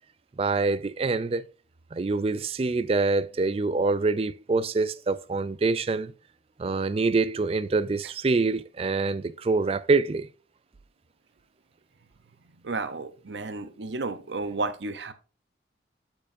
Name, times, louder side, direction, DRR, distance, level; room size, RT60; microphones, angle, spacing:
voice 1, 0.4-1.4 1.9-6.1 6.6-10.3, right 3 dB, 30° right, 0.3 m, -25 dB
voice 2, 12.6-15.1, right 3 dB, 80° right, 0.8 m, -32 dB
12.5 x 4.5 x 2.6 m
head